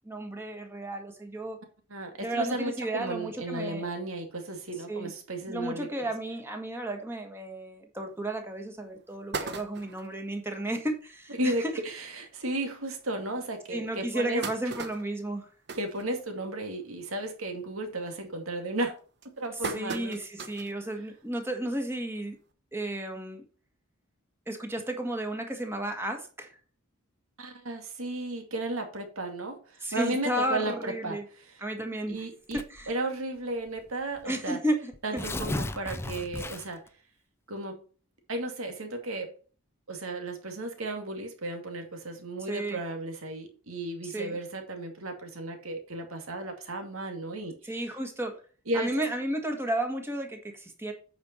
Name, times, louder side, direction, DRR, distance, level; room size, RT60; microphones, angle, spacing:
voice 1, 0.0-1.6 2.2-3.9 4.9-5.1 5.5-11.5 13.7-15.5 19.7-22.4 22.7-23.4 24.5-26.5 29.8-31.2 31.6-32.2 32.5-32.9 34.2-35.2 42.5-42.8 44.0-44.4 47.6-48.3 48.7-50.9, right 1 dB, 10° right, 4 dB, 1.6 m, -33 dB
voice 2, 1.9-6.1 11.4-14.4 15.8-18.9 19.4-20.2 27.4-31.2 32.1-34.6 35.0-36.8 37.5-37.8 38.3-39.3 39.9-47.5 48.7-48.9, right 2 dB, 85° right, 5 dB, 2.2 m, -34 dB
sound 1, 8.2-8.3 8.8-8.9 9.1-10.2 10.7-10.8 11.1-11.2 11.5-11.7 12.4-12.5 13.0-13.1 13.9-16.7 17.1-17.4 17.8-18.2 18.8-20.8 21.2-21.3 22.5-22.6, right 4 dB, 55° right, 1.0 m, -38 dB
Tearing, 32.5-32.9 33.8-33.9 34.2-34.3 34.9-36.9, left 2 dB, 10° left, 0.5 m, -34 dB
8.7 x 5.3 x 4.4 m, 0.37 s
head